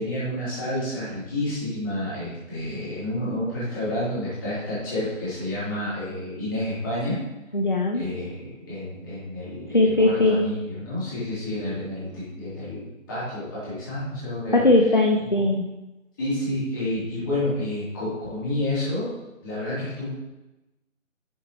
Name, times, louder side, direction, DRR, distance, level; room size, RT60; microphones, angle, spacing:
voice 1, 0.0-7.2 7.9-14.6 16.2-19.1 19.4-20.1, left 1 dB, 15° left, -11 dB, 3.3 m, -29 dB
voice 2, 7.5-8.1 9.7-10.5 14.5-15.6, left 2 dB, 40° left, 1 dB, 0.6 m, -19 dB
10.5 x 7.3 x 3.1 m, 1.0 s
figure-of-eight pair, 160°, 40 cm